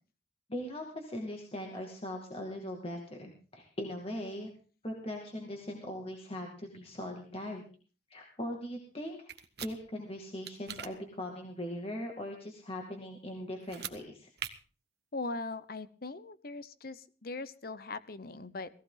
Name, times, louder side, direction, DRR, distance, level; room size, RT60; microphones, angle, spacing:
voice 1, 0.5-4.5 4.8-7.6 8.1-9.3 9.6-14.3, left 1 dB, 35° left, 1 dB, 2.4 m, -40 dB
sound 1, 9.3-9.7 10.5-10.9 13.6-14.0 14.4-14.5, right 10 dB, 65° right, 1.3 m, -40 dB
voice 2, 15.1-18.7, left 3 dB, 55° left, 14 dB, 1.0 m, -40 dB
18.0 x 15.0 x 4.0 m, 0.39 s
head